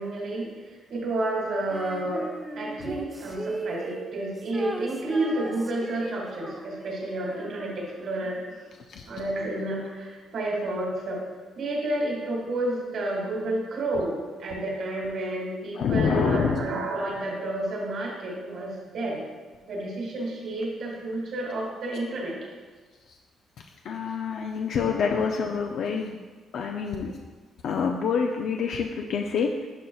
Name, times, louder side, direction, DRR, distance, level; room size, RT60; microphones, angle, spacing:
voice 1, 0.0-2.3 2.6-8.7 9.0-11.2 11.5-19.2 19.6-22.5, right 1 dB, 65° right, -1 dB, 1.8 m, -30 dB
Female singing, 1.7-8.2, right 3 dB, 15° right, 0.6 m, -38 dB
voice 2, 15.8-16.6 23.8-26.2 26.5-27.2 27.6-29.7, left 6 dB, 70° left, 2 dB, 0.4 m, -27 dB
9.9 x 5.1 x 2.3 m, 1.4 s
cardioid pair, 90°, 0 cm